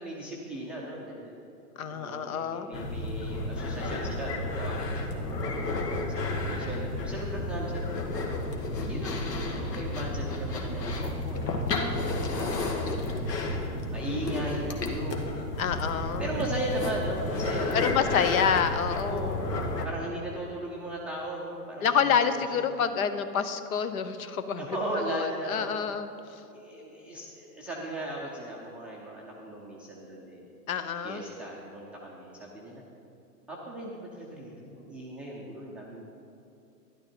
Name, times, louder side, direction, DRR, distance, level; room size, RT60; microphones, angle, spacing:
voice 1, 0.0-1.3 1.9-5.5 6.1-8.0 8.8-11.6 12.3-13.2 13.9-15.3 16.0-18.6 19.0-19.4 19.8-22.7 24.6-25.8 26.5-30.5 31.0-32.8 33.5-36.0, right 1 dB, ahead, -5 dB, 0.5 m, -37 dB
voice 2, 1.8-2.7 15.6-16.3 17.7-19.5 21.8-24.8 25.1-26.1 30.7-31.2, left 7 dB, 60° left, 10 dB, 0.9 m, -28 dB
sound 1, 2.7-19.9, left 2 dB, 75° left, 1.8 m, -31 dB
12.0 x 11.5 x 4.4 m, 2.7 s
hypercardioid pair, 135°, 49 cm